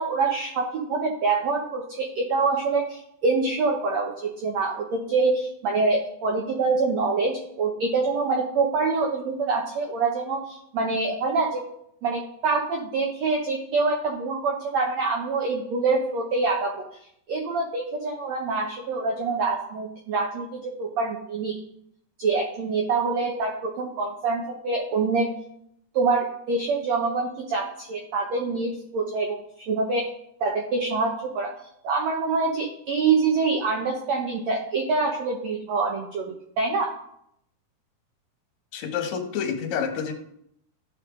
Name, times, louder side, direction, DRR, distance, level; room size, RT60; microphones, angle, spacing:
voice 1, 0.0-11.6 12.0-16.8 17.3-21.6 22.2-25.3 25.9-30.0 30.4-31.5 31.8-36.9, right 4 dB, 85° right, 1 dB, 1.5 m, -25 dB
voice 2, 38.7-40.1, left 7 dB, 65° left, 4 dB, 1.9 m, -28 dB
14.5 x 5.5 x 3.7 m, 0.73 s
omnidirectional pair, 4.6 m